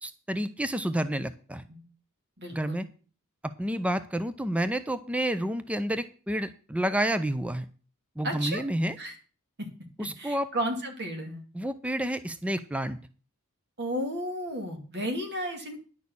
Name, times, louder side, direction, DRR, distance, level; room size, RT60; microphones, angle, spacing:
voice 1, 0.0-1.6 2.5-2.8 3.4-7.7 8.2-9.0 10.0-10.5 11.5-13.0, right 1 dB, 5° right, 12 dB, 0.5 m, -29 dB
voice 2, 2.4-2.8 8.2-8.6 9.0-9.1 9.6-9.7 10.0-11.4 13.8-15.8, equal, 50° right, 4 dB, 2.5 m, -33 dB
10.5 x 6.4 x 7.0 m, 0.39 s
head